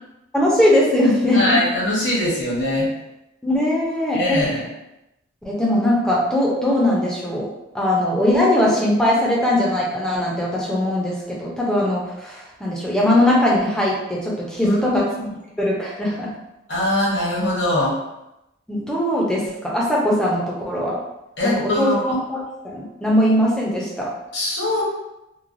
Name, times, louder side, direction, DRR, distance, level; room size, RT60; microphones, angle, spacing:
voice 1, 0.3-1.6 3.4-4.4 5.4-7.5 7.7-15.1 15.6-16.3 18.7-21.0 21.4-24.1, left 1 dB, 5° left, -5 dB, 0.5 m, -20 dB
voice 2, 1.3-2.9 4.1-4.7 14.6-15.4 16.7-17.9 21.4-22.1 24.3-24.8, left 1 dB, 55° left, -5 dB, 1.0 m, -22 dB
3.0 x 2.1 x 2.5 m, 0.90 s
head